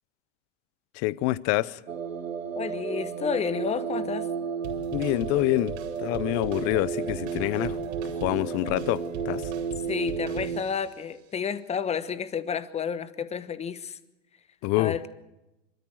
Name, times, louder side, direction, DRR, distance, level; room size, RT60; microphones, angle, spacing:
voice 1, 0.9-1.8 4.9-7.8 8.2-9.4 14.6-15.0, left 18 dB, 40° left, 0.7 m, -26 dB
sound 1, 1.9-10.6, right 6 dB, 90° right, 1.4 m, -32 dB
voice 2, 2.6-4.3 9.9-14.0 14.8-15.1, left 7 dB, 15° left, 1.1 m, -31 dB
sound 2, 4.6-11.0, right 5 dB, 55° right, 5.1 m, -41 dB
26.0 x 13.5 x 7.8 m
hypercardioid pair, 100°, 38 cm